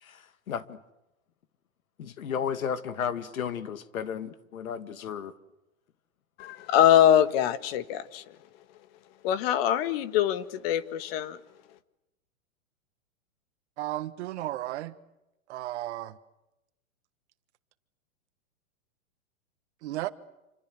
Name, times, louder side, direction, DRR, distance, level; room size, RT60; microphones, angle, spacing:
voice 1, 0.0-0.8 2.0-5.3, left 7 dB, 85° left, 2.2 m, -34 dB
voice 2, 6.4-8.2 9.2-11.4, left 11 dB, 45° left, 1.8 m, -23 dB
voice 3, 13.8-14.9 15.5-16.2 19.8-20.1, right 15 dB, 55° right, 1.6 m, -34 dB
28.0 x 26.0 x 7.8 m
hypercardioid pair, 140°, 41 cm